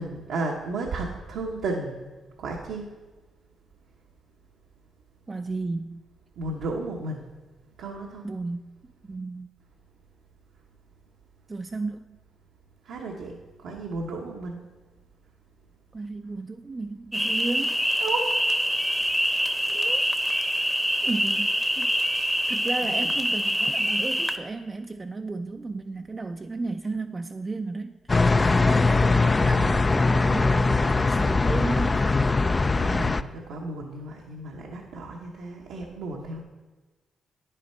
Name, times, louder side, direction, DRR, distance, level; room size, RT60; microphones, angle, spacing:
voice 1, 0.0-2.0 2.4-2.9 6.4-7.3 7.8-8.2 12.8-14.6 18.0-18.3 22.8-23.1 32.7-36.4, right 2 dB, 75° right, -1 dB, 0.9 m, -33 dB
voice 2, 5.3-6.0 8.2-8.6 9.0-9.5 11.5-12.0 15.9-17.8 19.7-20.1 21.0-21.9 22.5-32.3, right 3 dB, 35° right, 5 dB, 0.4 m, -33 dB
sound 1, 17.1-24.4, equal, ahead, 0.8 m, -25 dB
sound 2, 28.1-33.2, left 3 dB, 30° left, 0.4 m, -21 dB
9.4 x 6.7 x 4.3 m, 1.3 s
hypercardioid pair, 45°, 0 cm